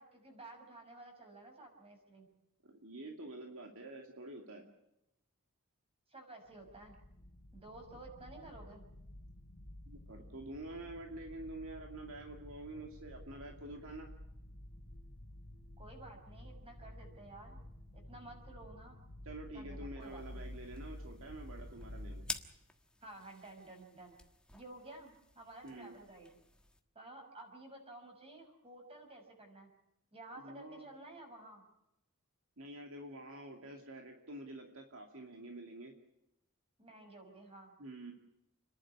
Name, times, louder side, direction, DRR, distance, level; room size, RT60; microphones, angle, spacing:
voice 1, 0.0-2.3 6.1-7.0 7.5-8.8 15.8-17.6 17.9-19.0 19.5-20.4 23.0-24.1 24.5-26.3 26.9-29.7 30.1-31.6 36.8-37.8, right 2 dB, 25° right, 3 dB, 6.3 m, -53 dB
voice 2, 2.6-4.7 9.9-14.1 19.2-22.3 25.6-25.9 30.4-30.9 32.6-35.9 37.8-38.1, right 2 dB, 65° right, 3 dB, 2.5 m, -48 dB
sound 1, 6.5-22.4, left 1 dB, 55° left, 3.6 m, -51 dB
sound 2, 20.0-26.8, left 2 dB, 5° left, 1.4 m, -51 dB
30.0 x 11.5 x 9.8 m, 0.86 s
head